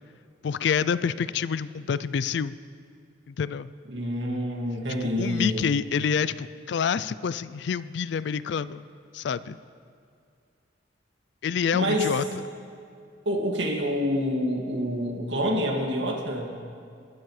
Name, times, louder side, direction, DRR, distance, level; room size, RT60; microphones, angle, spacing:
voice 1, 0.4-2.6 3.3-3.7 5.0-8.8 9.1-9.6 11.4-12.4, left 6 dB, 60° left, 16 dB, 0.3 m, -27 dB
voice 2, 3.9-5.7 11.7-12.1 13.3-16.5, equal, 70° right, 0 dB, 2.2 m, -27 dB
21.0 x 13.0 x 3.2 m, 2.4 s
head